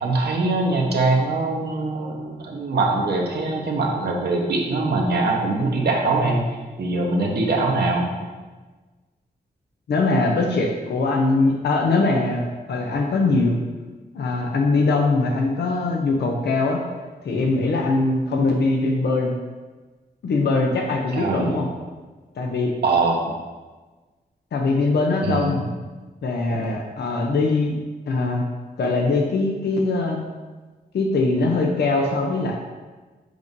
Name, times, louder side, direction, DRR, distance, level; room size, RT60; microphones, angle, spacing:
voice 1, 0.0-6.5 6.8-8.1 21.1-21.6 22.8-23.2 25.2-25.6, right 3 dB, 80° right, 0 dB, 1.1 m, -22 dB
voice 2, 9.9-13.6 14.1-16.8 17.2-19.4 20.2-21.7 22.4-22.7 24.5-25.7 26.2-27.8 28.1-28.5 28.8-30.2 30.9-32.6, left 3 dB, 90° left, 1 dB, 0.7 m, -21 dB
7.8 x 2.7 x 5.2 m, 1.3 s
wide cardioid pair, 80°, 17 cm